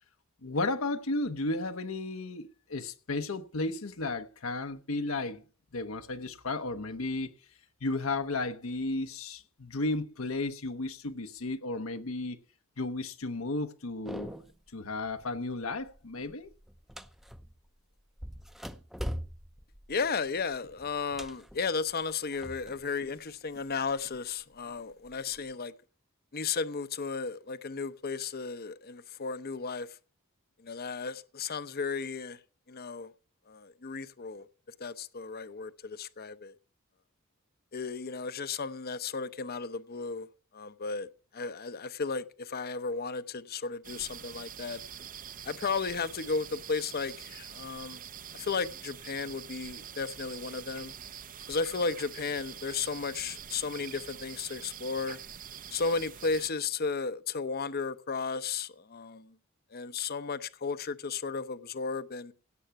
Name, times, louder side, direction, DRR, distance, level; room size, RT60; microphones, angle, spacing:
voice 1, 0.4-5.4 5.7-7.3 7.8-12.4 12.8-14.3 14.7-16.5, left 2 dB, 70° left, 1.0 m, -34 dB
sound 1, 14.1-14.7 15.1-15.5 15.8-17.7 18.2-22.9 23.2-24.2 24.8-25.6, equal, ahead, 0.7 m, -42 dB
voice 2, 19.9-25.7 26.3-29.9 30.6-32.4 32.7-33.1 33.5-34.5 34.8-36.5 37.7-40.3 40.5-41.1 41.3-44.8 45.4-48.0 48.3-50.9 51.5-55.2 55.7-59.3 59.7-62.3, left 4 dB, 45° left, 0.8 m, -34 dB
sound 2, 43.8-56.5, right 8 dB, 40° right, 0.7 m, -45 dB
17.0 x 7.7 x 5.9 m
head